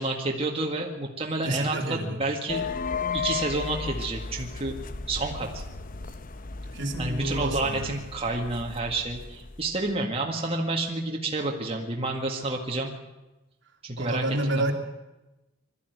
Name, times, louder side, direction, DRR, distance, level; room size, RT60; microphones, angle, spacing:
voice 1, 0.0-2.7 3.1-4.7 5.1-5.6 7.0-12.9 13.8-14.7, right 2 dB, 25° right, 0 dB, 2.0 m, -29 dB
voice 2, 1.4-2.2 6.7-7.9 14.0-14.7, right 1 dB, 55° right, 4 dB, 2.5 m, -29 dB
sound 1, 2.5-9.9, left 5 dB, 40° left, 0.9 m, -35 dB
22.5 x 13.5 x 9.4 m, 1.0 s
head